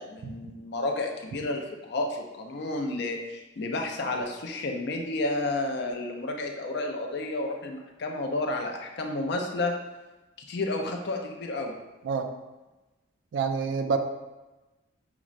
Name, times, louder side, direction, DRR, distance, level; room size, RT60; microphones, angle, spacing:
voice 1, 0.0-9.7 10.5-11.7, left 2 dB, 55° left, 2 dB, 0.4 m, -31 dB
voice 2, 13.3-14.0, right 5 dB, 65° right, 7 dB, 0.3 m, -27 dB
5.8 x 2.0 x 2.5 m, 1.1 s
head